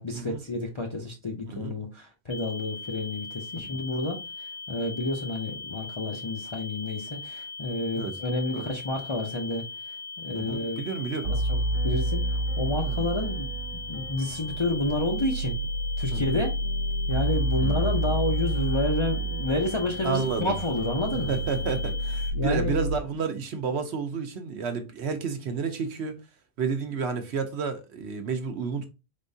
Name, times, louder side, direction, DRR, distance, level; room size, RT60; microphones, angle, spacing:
voice 1, 0.0-9.7 10.2-10.9 11.3-11.6 11.8-13.5 13.9-15.6 16.0-16.6 17.1-21.3 22.3-22.8, left 2 dB, 35° left, 0.5 m, -30 dB
sound 1, 2.3-22.3, left 4 dB, 70° left, 1.0 m, -40 dB
voice 2, 10.3-11.3 12.8-13.0 16.1-16.4 17.6-18.1 20.0-20.6 21.1-26.1 26.6-28.9, right 5 dB, 65° right, 1.0 m, -31 dB
sound 2, 11.2-23.0, right 2 dB, 80° right, 1.2 m, -29 dB
4.4 x 3.5 x 2.6 m
omnidirectional pair, 1.3 m